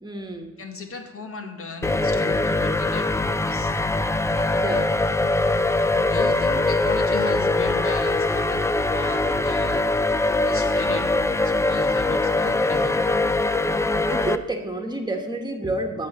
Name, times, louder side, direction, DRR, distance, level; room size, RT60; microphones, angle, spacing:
voice 1, 0.0-0.6 4.6-4.8 14.0-16.1, right 2 dB, 15° right, 3 dB, 1.5 m, -29 dB
voice 2, 0.6-3.7 4.3-4.9 6.1-9.9 10.4-13.1, left 3 dB, 45° left, 4 dB, 1.5 m, -36 dB
sound 1, 1.8-14.4, left 2 dB, 10° left, 0.4 m, -22 dB
11.5 x 7.0 x 6.8 m, 1.2 s
cardioid pair, 90°, 30 cm